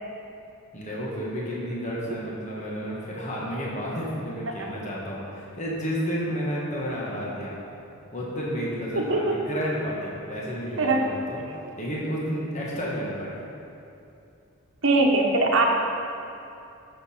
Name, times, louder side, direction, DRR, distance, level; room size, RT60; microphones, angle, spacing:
voice 1, 0.7-7.6 8.1-11.4 11.8-13.3, equal, 30° left, -4 dB, 1.4 m, -31 dB
voice 2, 8.9-9.4 10.8-11.2 14.8-15.6, right 2 dB, 60° right, 0 dB, 1.1 m, -22 dB
12.5 x 6.8 x 4.4 m, 2.7 s
head